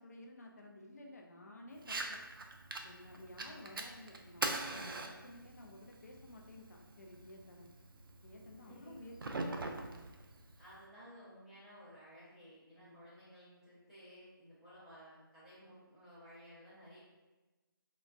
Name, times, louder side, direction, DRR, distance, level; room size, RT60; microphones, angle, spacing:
voice 1, 0.0-2.2 2.8-7.7 8.2-9.9 12.8-13.0, left 1 dB, 45° left, 1 dB, 0.5 m, -53 dB
Fire, 1.8-10.8, right 3 dB, 65° right, 0.4 m, -44 dB
voice 2, 8.6-9.1 10.6-17.0, equal, 5° right, -13 dB, 0.5 m, -56 dB
3.8 x 2.1 x 2.3 m, 1.1 s
figure-of-eight pair, 160°, 12 cm